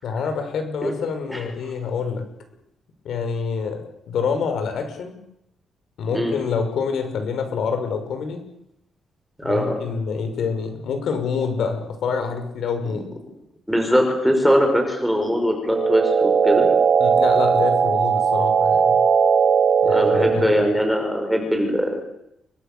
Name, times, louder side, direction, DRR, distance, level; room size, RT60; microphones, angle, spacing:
voice 1, 0.0-2.3 3.0-5.2 6.0-8.4 9.4-13.0 17.0-19.0 19.8-20.5, left 5 dB, 60° left, 6 dB, 5.8 m, -26 dB
voice 2, 9.4-9.8 13.7-16.7 19.9-22.0, equal, ahead, 3 dB, 5.6 m, -21 dB
sound 1, 15.6-20.6, right 6 dB, 35° right, 1.2 m, -18 dB
29.5 x 24.0 x 7.0 m, 0.79 s
cardioid pair, 180°, 0 cm